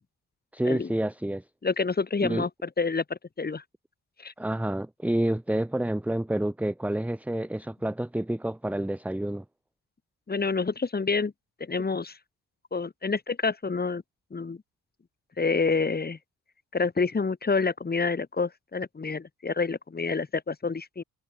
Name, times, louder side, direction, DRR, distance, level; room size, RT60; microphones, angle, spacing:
voice 1, 0.5-1.4 2.2-2.5 4.4-9.4, right 1 dB, 5° right, 1.3 m, -28 dB
voice 2, 1.6-3.6 4.2-4.3 10.3-11.3 11.6-12.2 12.7-14.0 14.3-14.6 15.4-16.2 16.7-21.0, left 4 dB, 20° left, 3.9 m, -28 dB
cardioid pair, 150°, 41 cm